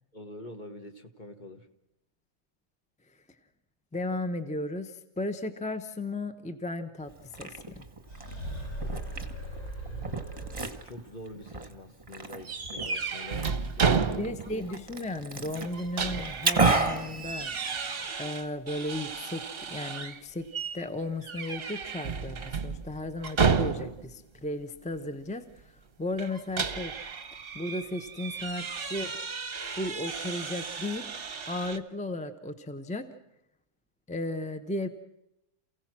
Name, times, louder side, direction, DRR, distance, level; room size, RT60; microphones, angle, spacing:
voice 1, 0.1-1.7 9.8-10.1 10.8-14.4, left 1 dB, 35° left, 5 dB, 1.5 m, -45 dB
voice 2, 3.9-7.9 14.2-17.5 18.2-20.5 20.7-26.9 27.5-29.1 29.7-31.1 31.5-33.1 34.1-34.9, left 1 dB, 5° left, 9 dB, 0.8 m, -35 dB
Liquid, 7.1-18.1, right 3 dB, 25° right, 1.3 m, -33 dB
sound 1, 8.1-11.1, right 1 dB, 80° left, 4.6 m, -38 dB
sound 2, 12.5-14.6 14.9-15.0 15.6-20.2 20.5-20.8 21.2-24.1 26.2-31.8, right 5 dB, 45° right, 1.1 m, -32 dB
28.5 x 16.5 x 6.1 m, 0.87 s
omnidirectional pair, 1.5 m